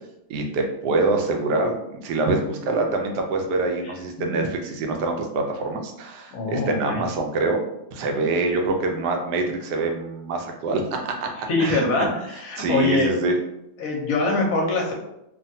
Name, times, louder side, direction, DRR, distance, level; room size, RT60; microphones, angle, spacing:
voice 1, 0.3-7.6 7.9-12.1 12.6-13.4, right 3 dB, 80° right, 3 dB, 1.1 m, -25 dB
voice 2, 6.3-7.0 11.5-13.1 13.8-14.9, left 3 dB, 65° left, 0 dB, 1.0 m, -23 dB
3.2 x 2.2 x 2.6 m, 0.83 s
omnidirectional pair, 1.8 m